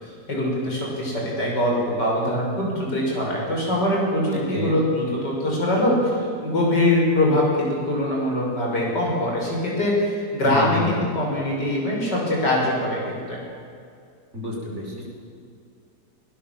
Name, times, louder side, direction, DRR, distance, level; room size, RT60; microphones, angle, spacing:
voice 1, 0.3-13.4, left 1 dB, 85° left, -2 dB, 7.0 m, -23 dB
voice 2, 4.3-4.8 10.5-11.1 14.3-15.1, left 2 dB, 40° right, -2 dB, 5.8 m, -30 dB
21.0 x 20.0 x 7.4 m, 2.4 s
omnidirectional pair, 1.8 m